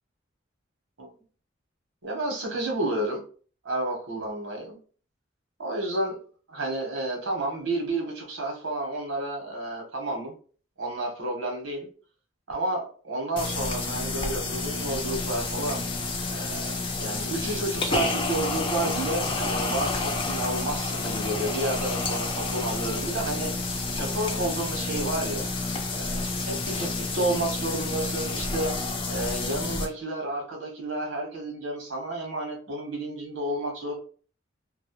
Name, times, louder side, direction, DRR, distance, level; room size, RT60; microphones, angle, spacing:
voice 1, 2.0-3.2 3.6-4.8 5.6-6.2 6.5-10.3 10.8-11.9 12.5-15.8 16.3-23.5 23.9-25.5 25.9-28.7 29.1-34.0, right 2 dB, 85° right, 1 dB, 0.9 m, -31 dB
sound 1, 13.4-29.9, left 3 dB, 25° left, 0.3 m, -29 dB
2.2 x 2.0 x 2.8 m, 0.42 s
head